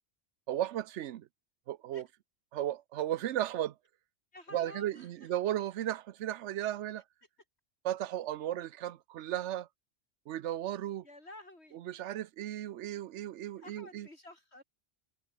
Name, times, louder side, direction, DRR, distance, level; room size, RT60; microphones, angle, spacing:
voice 1, 0.5-1.3 1.7-2.0 2.5-3.7 4.5-7.0 7.8-9.7 10.3-11.0 11.9-14.1, right 12 dB, 90° right, 1.0 m, -35 dB
voice 2, 4.3-5.3 7.2-7.3 11.0-12.2 13.6-14.6, left 1 dB, 70° left, 5.6 m, -52 dB
omnidirectional pair, 1.2 m